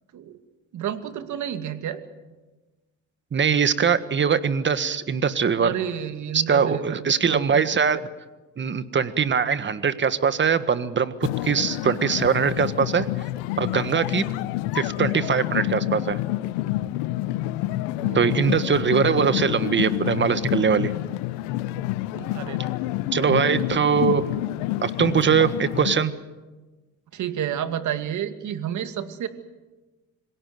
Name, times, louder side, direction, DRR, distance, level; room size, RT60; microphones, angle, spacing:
voice 1, 0.7-2.0 5.6-7.6 18.0-18.6 22.1-22.6 23.1-23.5 23.8-23.9 27.1-29.3, right 10 dB, 60° right, 9 dB, 2.4 m, -31 dB
voice 2, 3.3-5.7 6.3-8.0 8.6-13.1 13.6-14.2 14.7-16.2 18.1-20.9 23.1-24.2 24.8-26.1, right 6 dB, 35° right, 13 dB, 1.6 m, -22 dB
sound 1, 11.2-26.0, left 16 dB, 90° left, 0.8 m, -28 dB
26.0 x 17.5 x 9.5 m, 1.2 s
supercardioid pair, 90°, 34 cm